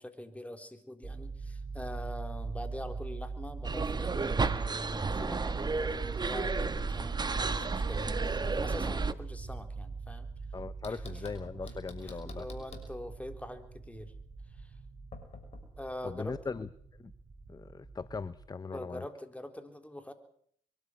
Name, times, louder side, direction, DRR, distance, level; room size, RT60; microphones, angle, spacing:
voice 1, 0.0-10.3 10.9-11.2 12.0-14.1 14.5-14.8 15.8-16.4 18.7-20.1, left 1 dB, 10° left, 7 dB, 3.7 m, -44 dB
sound 1, 1.0-18.5, right 4 dB, 45° right, 4.6 m, -43 dB
sound 2, 3.6-9.1, right 4 dB, 30° right, 1.4 m, -32 dB
Knock, 6.6-8.7 10.8-13.0 15.1-15.6, left 4 dB, 50° left, 6.0 m, -50 dB
voice 2, 10.5-12.4 16.0-16.7 17.0-17.1 17.5-19.0, left 4 dB, 25° left, 16 dB, 0.9 m, -39 dB
23.0 x 12.5 x 9.8 m, 0.63 s
supercardioid pair, 55°, 14 cm